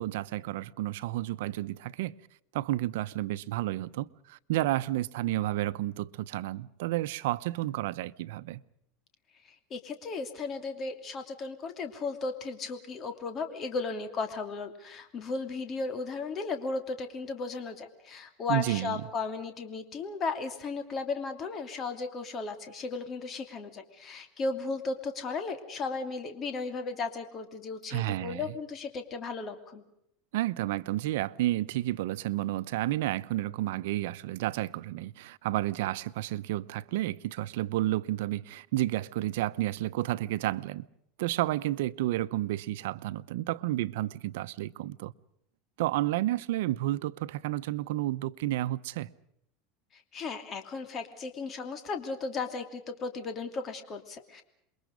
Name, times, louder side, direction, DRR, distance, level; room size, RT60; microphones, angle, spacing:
voice 1, 0.0-2.1 2.5-8.6 18.5-19.0 27.9-28.5 30.3-40.9 41.2-45.1 45.8-49.1, right 15 dB, 80° right, 0.9 m, -31 dB
voice 2, 9.7-29.8 49.9-54.4, left 4 dB, 30° left, 2.8 m, -35 dB
28.0 x 23.0 x 5.2 m
supercardioid pair, 145°, 0 cm